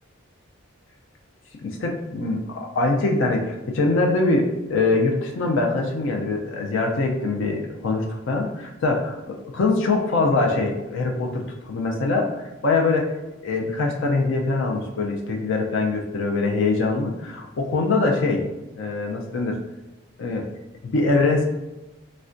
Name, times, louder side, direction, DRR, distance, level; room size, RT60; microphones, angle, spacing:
voice 1, 1.6-13.2 13.4-18.4 18.7-19.6 20.2-20.4 20.8-21.4, left 3 dB, 60° left, 1 dB, 0.4 m, -23 dB
3.4 x 2.1 x 2.5 m, 1.0 s
head